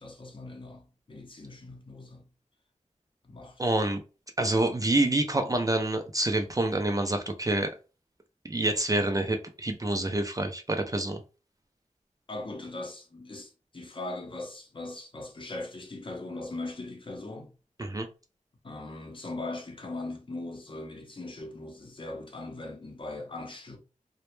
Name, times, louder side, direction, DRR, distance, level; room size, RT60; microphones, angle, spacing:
voice 1, 0.0-2.2 3.2-3.7 12.3-17.5 18.6-23.8, left 2 dB, 40° left, 0.6 m, -40 dB
voice 2, 3.6-4.0 4.4-7.7 8.4-11.2 17.8-18.1, right 2 dB, 25° right, 0.4 m, -27 dB
2.1 x 2.0 x 3.0 m
wide cardioid pair, 75°, 13 cm